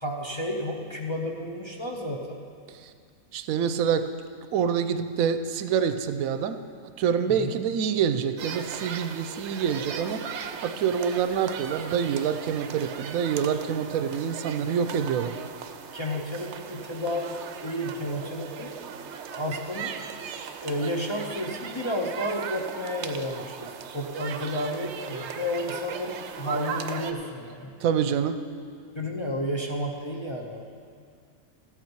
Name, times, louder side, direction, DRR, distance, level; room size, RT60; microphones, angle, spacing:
voice 1, 0.0-2.4 7.3-7.5 15.9-19.0 19.3-20.0 20.6-27.8 28.9-30.6, left 1 dB, 30° left, -1 dB, 0.6 m, -32 dB
voice 2, 3.3-4.1 4.5-6.6 7.0-15.4 27.8-28.4, right 7 dB, 85° right, 10 dB, 1.0 m, -26 dB
sound 1, 8.4-27.1, right 7 dB, 65° right, 0.8 m, -38 dB
13.5 x 8.2 x 4.6 m, 2.2 s
omnidirectional pair, 1.4 m